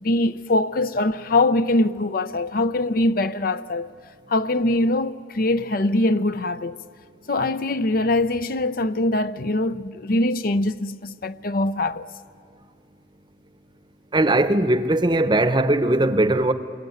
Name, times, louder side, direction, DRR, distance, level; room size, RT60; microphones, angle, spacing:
voice 1, 0.0-3.9 4.3-6.8 7.3-12.1, left 2 dB, 55° left, 0.6 m, -22 dB
voice 2, 14.1-16.5, right 1 dB, 25° right, 0.9 m, -19 dB
27.5 x 22.0 x 9.3 m
head